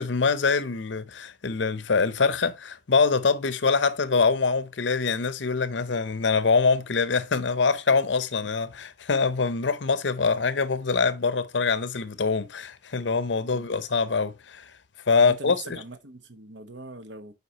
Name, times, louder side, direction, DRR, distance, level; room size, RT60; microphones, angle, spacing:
voice 1, 0.0-14.7 15.1-15.8, left 4 dB, 85° left, 0.8 m, -24 dB
voice 2, 15.2-17.3, right 3 dB, 75° right, 1.1 m, -42 dB
8.2 x 4.9 x 2.8 m
head